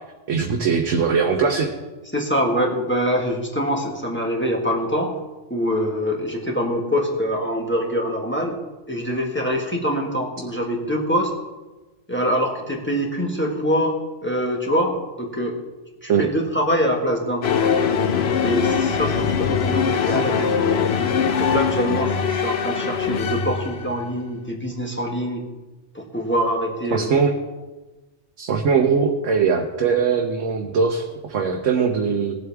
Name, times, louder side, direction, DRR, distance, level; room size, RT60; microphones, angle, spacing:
voice 1, 0.3-1.7 16.1-16.2 20.0-20.2 26.9-27.3 28.4-32.4, right 5 dB, 80° right, 1 dB, 1.2 m, -21 dB
voice 2, 2.1-5.2 5.5-8.6 8.9-11.3 12.1-15.6 16.0-17.5 18.4-20.8 21.4-25.4 25.9-27.2, equal, 10° left, -1 dB, 1.5 m, -24 dB
sound 1, 17.4-24.0, left 6 dB, 60° left, 0.9 m, -22 dB
19.0 x 7.8 x 3.5 m, 1.2 s
omnidirectional pair, 1.3 m